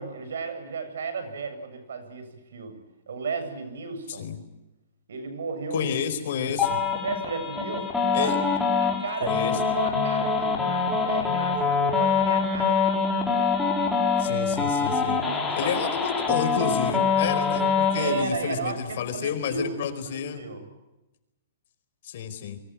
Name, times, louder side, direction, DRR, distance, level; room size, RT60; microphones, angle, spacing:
voice 1, 0.0-2.8 3.1-4.3 5.1-6.6 7.0-8.4 8.8-13.1 14.9-15.9 18.0-19.8 20.1-20.6, right 4 dB, 90° right, 9 dB, 7.7 m, -34 dB
voice 2, 5.7-6.8 8.1-8.4 9.2-9.6 14.2-15.2 15.6-20.5 22.0-22.6, left 7 dB, 55° left, 8 dB, 4.8 m, -30 dB
sound 1, 6.6-18.2, left 5 dB, 5° left, 4.4 m, -24 dB
29.5 x 23.5 x 7.7 m, 0.98 s
hypercardioid pair, 165°, 0 cm